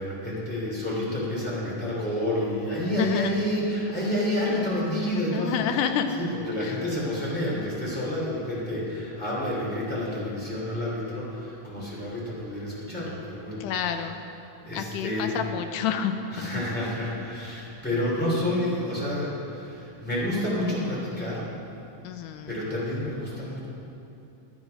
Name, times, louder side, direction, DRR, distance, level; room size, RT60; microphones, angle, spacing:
voice 1, 0.0-5.9 6.2-14.0 14.6-15.4 16.3-21.5 22.5-23.7, left 1 dB, 5° left, -7 dB, 2.6 m, -29 dB
voice 2, 3.0-3.3 5.1-6.1 6.6-6.7 13.6-14.2 14.7-16.5 22.0-22.5, left 8 dB, 80° left, 7 dB, 2.1 m, -29 dB
11.0 x 9.7 x 5.3 m, 2.8 s
omnidirectional pair, 3.7 m